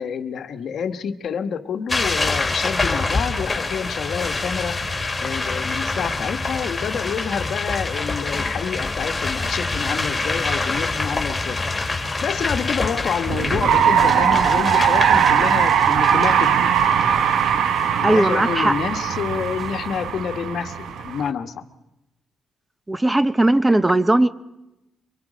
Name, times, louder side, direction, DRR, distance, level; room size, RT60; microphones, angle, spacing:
voice 1, 0.0-4.8 5.2-11.6 12.2-16.8 18.0-21.6, left 7 dB, 65° left, 9 dB, 1.2 m, -28 dB
sound 1, 1.9-17.8, left 3 dB, 20° left, 2.3 m, -26 dB
sound 2, 13.3-21.3, right 8 dB, 75° right, 0.9 m, -20 dB
voice 2, 18.0-18.7 22.9-24.3, right 1 dB, 15° right, 14 dB, 0.7 m, -18 dB
24.5 x 23.5 x 5.1 m, 0.93 s
cardioid pair, 105°, 0 cm